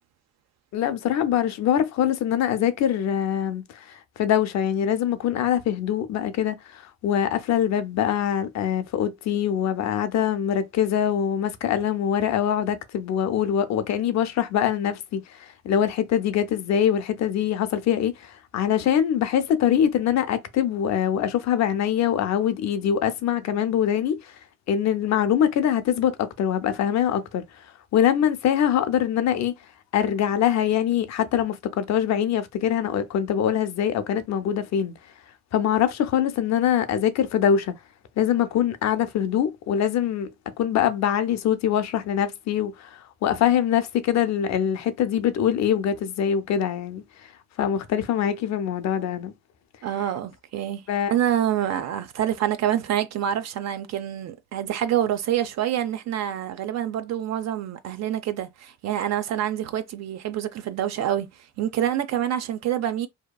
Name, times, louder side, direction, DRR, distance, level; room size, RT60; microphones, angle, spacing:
voice 1, 0.7-3.6 4.2-15.2 15.6-24.3 24.7-27.4 27.9-29.5 29.9-34.9 35.5-37.7 38.2-40.3 40.6-47.0 47.6-49.3 50.9-51.1, left 9 dB, 65° left, 0.5 m, -23 dB
voice 2, 49.8-50.8 51.1-61.3 61.6-63.1, right 11 dB, 60° right, 0.5 m, -26 dB
2.8 x 2.3 x 2.2 m
cardioid pair, 90°, 30 cm